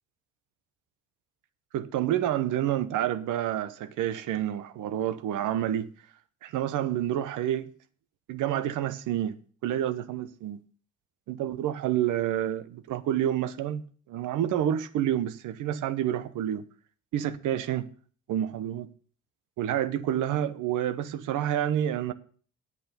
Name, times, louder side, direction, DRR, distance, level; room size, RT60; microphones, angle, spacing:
voice 1, 1.7-5.9 6.4-7.7 8.3-9.4 9.6-10.6 11.3-13.8 14.1-16.6 17.1-17.9 18.3-18.9 19.6-22.1, right 11 dB, 85° right, 0.9 m, -28 dB
8.5 x 8.2 x 6.8 m
cardioid pair, 90°, 30 cm